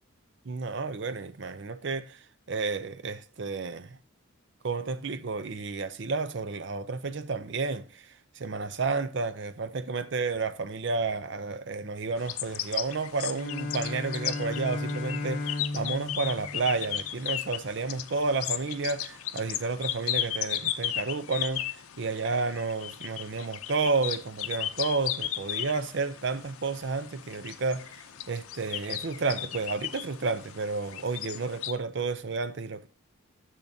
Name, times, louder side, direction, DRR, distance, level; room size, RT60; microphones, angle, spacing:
voice 1, 0.4-2.2 2.5-4.0 4.6-8.1 8.4-21.7 22.0-27.9 28.3-32.9, right 4 dB, 55° right, 0.5 m, -31 dB
sound 1, 12.2-31.7, left 12 dB, 85° left, 0.6 m, -36 dB
Bowed string instrument, 13.2-17.3, left 2 dB, 45° left, 1.2 m, -35 dB
10.5 x 7.2 x 2.7 m
head